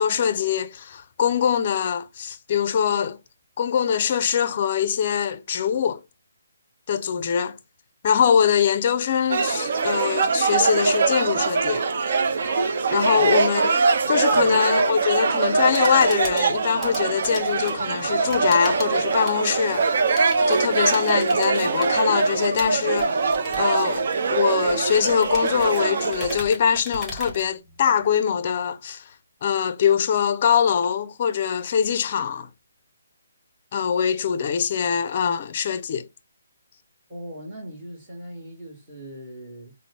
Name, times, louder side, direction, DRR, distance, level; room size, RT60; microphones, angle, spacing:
voice 1, 0.0-3.2 3.6-6.0 6.9-7.6 8.0-11.9 12.9-13.7 14.1-19.9 20.5-23.3 23.6-24.0 24.3-29.1 29.4-32.5 33.7-36.1, left 8 dB, 40° left, 0.4 m, -23 dB
sound 1, 9.3-26.4, right 4 dB, 55° right, 0.5 m, -23 dB
sound 2, 15.7-28.1, equal, ahead, 1.1 m, -40 dB
voice 2, 37.1-39.7, right 1 dB, 20° right, 1.5 m, -39 dB
3.7 x 2.0 x 3.4 m
figure-of-eight pair, 150°, 0 cm